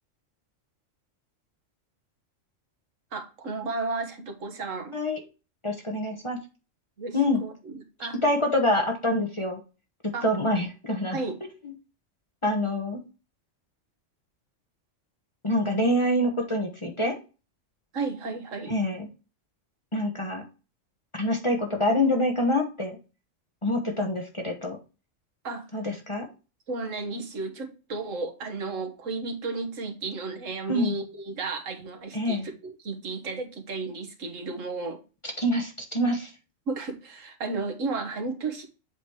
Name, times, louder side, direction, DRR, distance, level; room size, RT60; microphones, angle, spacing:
voice 1, 3.1-4.9 7.0-8.2 10.1-10.3 11.1-11.3 17.9-18.7 25.4-25.7 26.7-35.0 36.7-38.7, right 3 dB, 75° right, 4 dB, 1.6 m, -33 dB
voice 2, 5.6-6.4 7.1-7.4 8.2-9.6 10.2-11.2 12.4-13.0 15.4-17.2 18.7-19.1 19.9-20.4 21.1-23.0 23.6-24.8 25.7-26.3 30.7-30.9 32.1-32.5 35.4-36.3, left 1 dB, 25° left, 3 dB, 1.0 m, -26 dB
7.8 x 3.0 x 4.7 m, 0.32 s
omnidirectional pair, 1.3 m